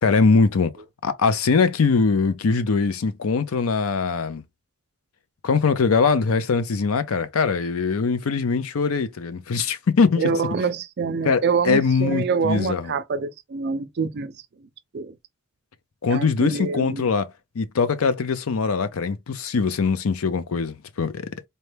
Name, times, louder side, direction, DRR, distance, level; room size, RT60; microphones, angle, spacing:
voice 1, 0.0-0.7 1.0-4.4 5.4-10.2 11.2-12.9 16.0-17.3 17.6-21.3, left 4 dB, 90° left, 0.5 m, -22 dB
voice 2, 10.2-14.3 14.9-15.1 16.1-17.1, right 5 dB, 55° right, 0.4 m, -26 dB
4.1 x 2.2 x 3.2 m
head